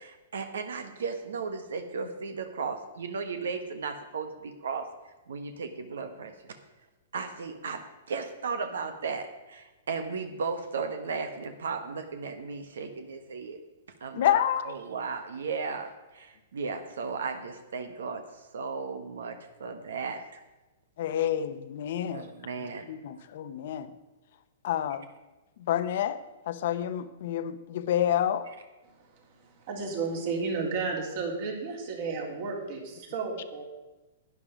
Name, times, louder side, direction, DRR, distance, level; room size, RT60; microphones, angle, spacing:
voice 1, 0.0-4.9 5.3-6.3 7.1-7.8 8.1-13.6 14.0-14.4 14.6-20.4 22.1-22.9, right 5 dB, 85° right, 7 dB, 1.2 m, -35 dB
voice 2, 14.1-14.7 21.0-22.3 22.6-23.9 24.6-25.1 25.6-26.2 26.5-28.5, left 10 dB, 60° left, 11 dB, 0.8 m, -28 dB
voice 3, 29.6-33.6, right 4 dB, 50° right, 0 dB, 3.3 m, -32 dB
11.5 x 9.6 x 5.1 m, 1.1 s
hypercardioid pair, 140°, 0 cm